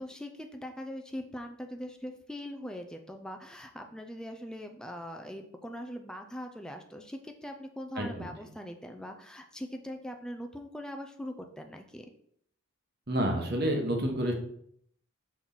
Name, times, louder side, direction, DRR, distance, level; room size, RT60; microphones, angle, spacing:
voice 1, 0.0-12.1, equal, 5° left, 4 dB, 0.4 m, -41 dB
voice 2, 8.0-8.3 13.1-14.3, right 1 dB, 45° right, 2 dB, 1.2 m, -29 dB
6.1 x 4.4 x 4.0 m, 0.67 s
head